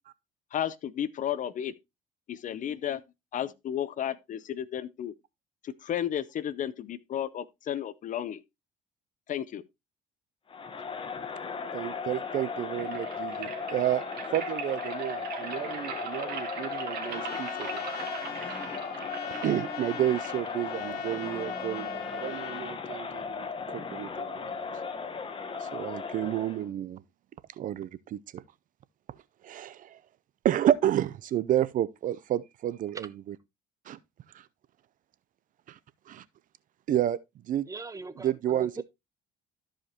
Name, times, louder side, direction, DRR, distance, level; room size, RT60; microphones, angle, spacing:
voice 1, 0.5-1.7 2.3-3.0 3.3-5.1 5.6-8.4 9.3-9.6, left 10 dB, 50° left, 0.6 m, -33 dB
Crowd, 10.5-26.7, left 5 dB, 30° left, 1.2 m, -36 dB
voice 2, 11.7-14.0 14.3-17.8 19.4-24.6 25.6-27.0 27.6-28.4 29.4-30.0 30.4-33.1 33.9-34.0 34.3-34.4 35.7-35.8 36.1-36.2 36.9-37.2 37.5-37.7 38.2-38.8, right 11 dB, 55° right, 0.5 m, -30 dB
sound 1, 12.2-21.2, right 8 dB, 70° right, 1.9 m, -42 dB
Trumpet, 17.0-22.8, left 8 dB, 70° left, 1.2 m, -42 dB
voice 3, 37.7-38.8, right 3 dB, 20° right, 0.8 m, -40 dB
13.5 x 5.0 x 2.9 m
cardioid pair, 110°, 17 cm